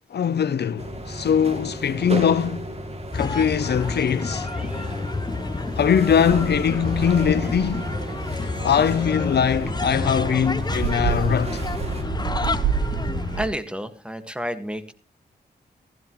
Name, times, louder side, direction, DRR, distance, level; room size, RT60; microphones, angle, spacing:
voice 1, 0.1-2.7 3.1-4.5 5.7-7.9 8.6-11.6, left 7 dB, 70° left, 0.7 m, -21 dB
sound 1, 0.8-12.0, right 1 dB, 35° right, 2.8 m, -34 dB
sound 2, 3.1-13.5, left 3 dB, 25° left, 0.9 m, -30 dB
voice 2, 4.5-4.9 12.5-12.6 13.4-14.9, equal, 5° right, 1.8 m, -31 dB
sound 3, 6.1-13.4, right 7 dB, 90° right, 0.9 m, -30 dB
15.5 x 15.0 x 3.1 m
cardioid pair, 65°, 18 cm